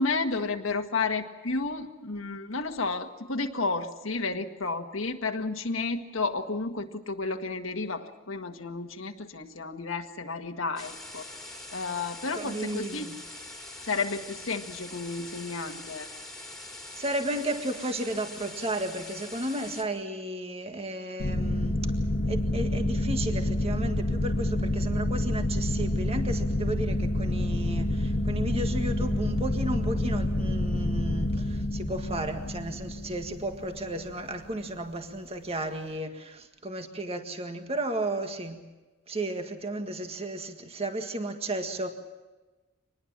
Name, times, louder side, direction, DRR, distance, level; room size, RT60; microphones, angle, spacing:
voice 1, 0.0-11.2 11.7-13.1 13.8-16.1, left 3 dB, 85° left, 4 dB, 1.7 m, -32 dB
sound 1, 10.8-19.8, left 2 dB, 5° left, 2.8 m, -43 dB
voice 2, 12.3-13.2 17.0-21.8 22.3-38.6 39.1-41.9, right 1 dB, 30° right, 5 dB, 1.8 m, -33 dB
sound 2, 21.2-34.4, left 1 dB, 60° left, 1.6 m, -28 dB
25.5 x 20.5 x 7.4 m, 1.2 s
head